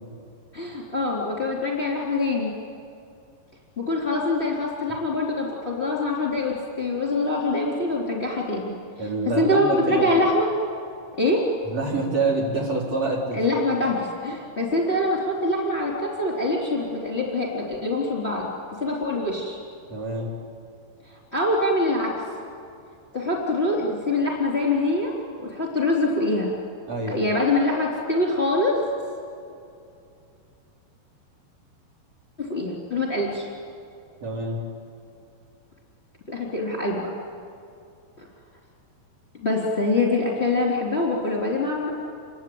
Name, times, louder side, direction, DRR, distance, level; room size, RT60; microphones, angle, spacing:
voice 1, 0.5-2.5 3.8-10.5 11.2-11.5 13.3-18.5 18.8-19.6 21.1-22.1 23.1-25.1 25.4-26.5 27.1-28.8 32.4-33.5 36.3-37.1 38.2-38.3 39.4-41.9, left 2 dB, 15° left, -2 dB, 3.9 m, -24 dB
voice 2, 9.0-10.2 11.7-13.9 19.9-20.3 26.9-27.3 34.2-34.6, right 2 dB, 40° right, -3 dB, 4.6 m, -27 dB
28.0 x 23.0 x 9.1 m, 2.5 s
omnidirectional pair, 4.9 m